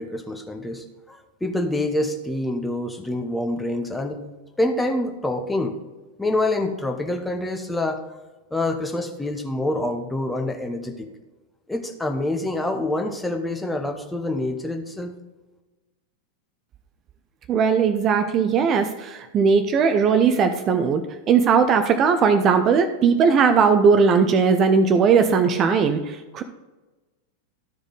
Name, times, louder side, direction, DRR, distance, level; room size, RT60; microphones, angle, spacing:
voice 1, 0.0-4.2 4.6-5.8 6.2-8.0 8.5-11.1 11.7-15.1, left 1 dB, 5° left, 4 dB, 1.0 m, -26 dB
voice 2, 17.5-21.0 21.3-26.4, right 5 dB, 30° right, 8 dB, 0.6 m, -18 dB
12.5 x 5.0 x 4.0 m, 1.2 s
figure-of-eight pair, 90°, 0 cm